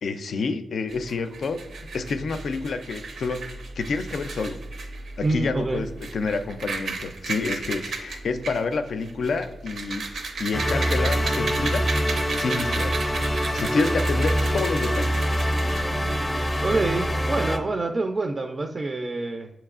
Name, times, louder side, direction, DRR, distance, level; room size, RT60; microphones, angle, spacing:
voice 1, 0.0-1.6 1.9-4.6 5.2-10.1 10.4-13.2 13.5-15.3, left 4 dB, 75° left, 9 dB, 0.3 m, -28 dB
sound 1, 0.9-17.2, right 3 dB, 80° right, 0.7 m, -35 dB
voice 2, 5.2-5.8 16.6-19.5, right 3 dB, 40° right, 4 dB, 0.4 m, -26 dB
sound 2, 10.5-17.6, equal, 20° left, 0.6 m, -25 dB
7.1 x 2.9 x 2.4 m, 0.99 s
cardioid pair, 75°, 0 cm